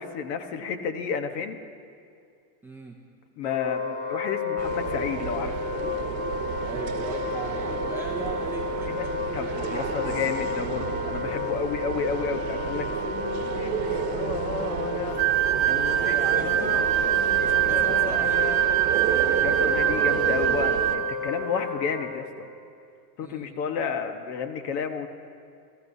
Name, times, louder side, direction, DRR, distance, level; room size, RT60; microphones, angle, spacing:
voice 1, 0.0-1.6 3.4-5.6 8.8-9.1 9.3-15.2 15.6-18.6 19.4-22.5 23.2-25.1, left 6 dB, 75° left, 8 dB, 1.3 m, -32 dB
voice 2, 2.6-3.0 6.6-10.0 15.9-16.8 17.4-18.4 23.2-23.5, right 3 dB, 5° right, 1 dB, 0.4 m, -38 dB
Wind instrument woodwind instrument, 3.4-22.1, left 4 dB, 30° left, 3.4 m, -32 dB
sound 1, 4.6-21.0, right 10 dB, 60° right, 1.0 m, -32 dB
sound 2, 15.2-21.2, right 12 dB, 45° right, 1.6 m, -24 dB
27.5 x 14.0 x 2.7 m, 2.3 s
supercardioid pair, 150°, 49 cm